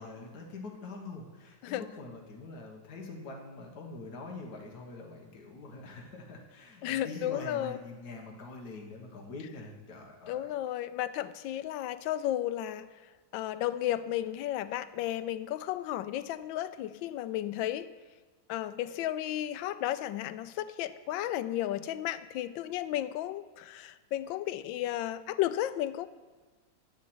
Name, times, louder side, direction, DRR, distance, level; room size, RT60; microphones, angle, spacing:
voice 1, 0.0-10.5, left 3 dB, 50° left, 1 dB, 1.8 m, -44 dB
voice 2, 6.8-7.8 10.3-12.9 13.3-17.9 18.5-26.1, left 13 dB, 75° left, 13 dB, 1.2 m, -33 dB
9.4 x 7.4 x 7.9 m, 1.3 s
omnidirectional pair, 2.2 m